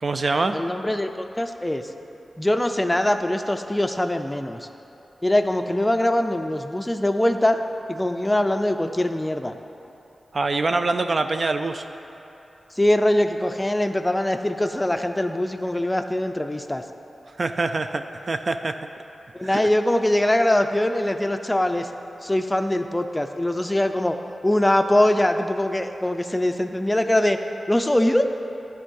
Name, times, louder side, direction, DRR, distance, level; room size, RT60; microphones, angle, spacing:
voice 1, 0.0-0.6 10.3-11.8 17.4-18.8 19.4-19.6, right 3 dB, 50° right, 8 dB, 0.4 m, -24 dB
voice 2, 0.5-1.9 2.4-4.7 5.2-7.6 7.9-9.6 12.8-16.8 19.3-21.9 22.2-24.2 24.4-27.4 27.7-28.3, left 1 dB, 15° left, 7 dB, 0.4 m, -22 dB
10.5 x 3.6 x 6.3 m, 2.9 s
wide cardioid pair, 70°, 0 cm